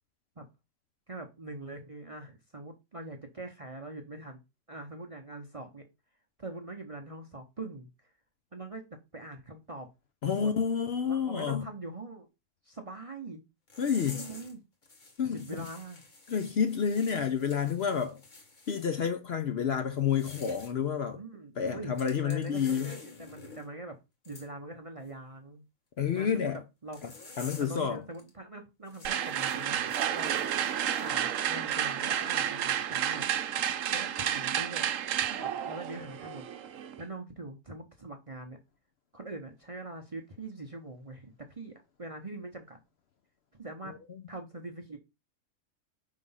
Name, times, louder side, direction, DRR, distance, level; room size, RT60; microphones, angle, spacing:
voice 1, 1.1-4.4 4.7-5.9 6.4-8.1 8.5-8.8 9.1-9.9 10.2-10.5 11.0-12.3 12.6-13.4 14.1-14.6 15.3-16.0 21.1-24.0 24.2-25.6 26.1-27.0 27.6-30.4 31.0-33.3 33.9-34.9 35.2-36.4 37.0-38.6 39.1-42.8 43.5-44.0 44.3-45.0, right 2 dB, 35° right, 0.6 m, -43 dB
voice 2, 10.2-11.6 13.8-14.2 15.2-15.7 16.3-18.2 18.7-21.2 21.6-22.9 26.0-26.6 27.0-27.1 27.4-28.0 43.9-44.0, left 7 dB, 60° left, 0.8 m, -29 dB
sound 1, 13.7-14.5 14.8-18.9 20.0-20.7 21.9-23.7 24.2-24.5 26.9-27.8 28.1-28.3 28.9-31.1, left 3 dB, 35° left, 1.3 m, -49 dB
sound 2, 29.0-37.0, right 10 dB, 70° right, 1.0 m, -31 dB
4.8 x 3.7 x 5.5 m
omnidirectional pair, 1.5 m